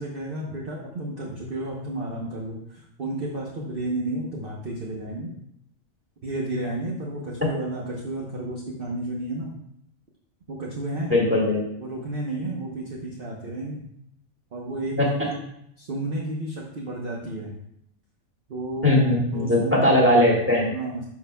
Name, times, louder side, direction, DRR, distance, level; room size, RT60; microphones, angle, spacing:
voice 1, 0.0-5.4 6.2-9.5 10.5-11.2 11.8-13.8 14.5-15.4 15.8-17.6 18.5-19.9 20.7-21.0, right 1 dB, 45° right, -2 dB, 1.0 m, -32 dB
voice 2, 11.1-11.6 15.0-15.1 18.8-20.7, left 1 dB, 10° right, -3 dB, 1.8 m, -19 dB
11.0 x 5.7 x 2.2 m, 0.75 s
omnidirectional pair, 1.5 m